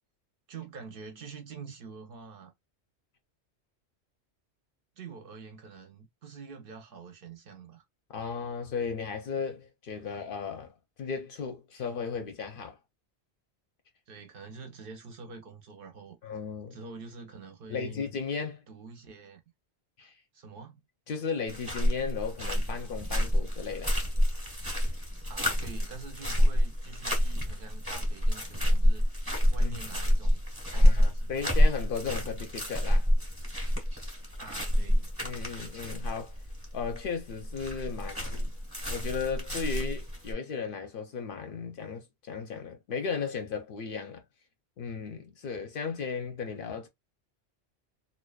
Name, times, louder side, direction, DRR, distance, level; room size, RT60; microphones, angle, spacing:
voice 1, 0.5-2.5 5.0-7.8 14.1-16.4 16.7-18.0 18.7-19.4 20.3-20.8 25.3-31.3 34.4-35.1, right 5 dB, 60° right, 0.7 m, -46 dB
voice 2, 8.1-12.8 16.2-16.8 17.7-18.6 20.0-20.1 21.1-24.0 29.6-29.8 30.7-33.1 35.2-36.4 36.7-38.5 38.9-44.2 44.8-46.9, left 5 dB, 60° left, 0.7 m, -35 dB
sound 1, 21.5-40.3, equal, 15° right, 0.9 m, -28 dB
2.5 x 2.2 x 2.2 m
omnidirectional pair, 1.1 m